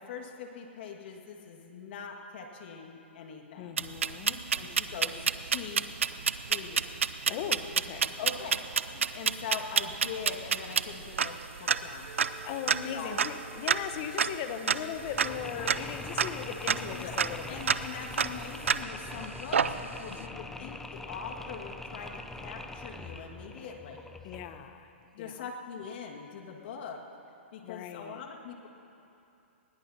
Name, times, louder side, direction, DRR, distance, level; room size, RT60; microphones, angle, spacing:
voice 1, 0.0-3.8 4.6-5.8 6.5-6.8 8.2-8.6 8.9-12.1 12.9-13.1 16.9-17.1 17.5-24.1 25.1-27.0 27.5-28.7, left 6 dB, 55° left, 2 dB, 1.9 m, -42 dB
voice 2, 3.6-4.4 7.2-8.1 12.4-17.7 20.1-20.7 24.2-24.9 25.2-25.4 27.6-28.2, left 8 dB, 40° left, 8 dB, 1.1 m, -39 dB
sound 1, 3.8-19.1 19.5-20.1, right 6 dB, 90° right, 0.5 m, -30 dB
sound 2, 12.1-17.1, left 1 dB, 55° right, 1.6 m, -52 dB
Mechanisms, 14.9-24.7, left 2 dB, 5° left, 0.6 m, -43 dB
20.0 x 19.5 x 2.9 m, 2.9 s
hypercardioid pair, 140°, 7 cm